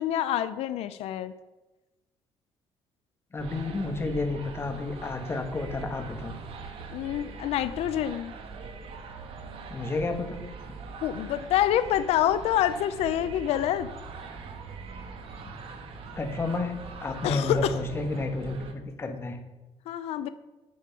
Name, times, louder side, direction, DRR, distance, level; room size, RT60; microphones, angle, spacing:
voice 1, 0.0-1.3 6.9-8.3 11.0-13.9 17.2-17.7 19.9-20.3, left 11 dB, 80° left, 13 dB, 0.5 m, -27 dB
voice 2, 3.3-6.4 9.7-10.4 16.2-19.4, left 3 dB, 25° left, 5 dB, 1.1 m, -31 dB
sound 1, 3.4-18.7, right 4 dB, 60° right, 1.4 m, -42 dB
9.4 x 7.7 x 5.7 m, 1.1 s
cardioid pair, 145°, 10 cm